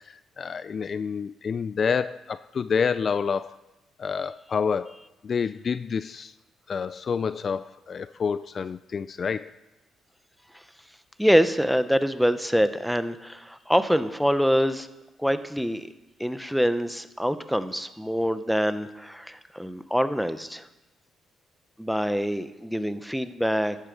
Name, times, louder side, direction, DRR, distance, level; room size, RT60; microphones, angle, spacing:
voice 1, 0.1-3.6 4.0-5.0 5.2-6.3 6.7-9.5, left 6 dB, 45° left, 15 dB, 0.3 m, -28 dB
voice 2, 11.2-14.9 15.2-15.9 16.2-20.7 21.8-23.8, equal, ahead, 11 dB, 0.7 m, -25 dB
14.0 x 10.0 x 5.2 m, 1.0 s
cardioid pair, 90°, 0 cm